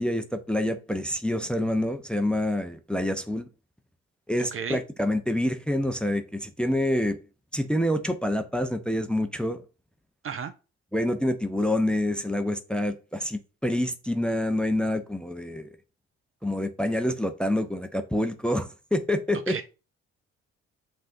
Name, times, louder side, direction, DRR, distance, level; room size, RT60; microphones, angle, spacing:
voice 1, 0.0-3.4 4.3-7.2 7.5-9.6 10.9-15.7 16.4-19.5, left 1 dB, 5° left, 0.6 m, -27 dB
voice 2, 4.5-4.8 10.2-10.5 19.5-19.7, right 6 dB, 40° right, 0.6 m, -33 dB
7.4 x 2.5 x 2.7 m
hypercardioid pair, 50°, 34 cm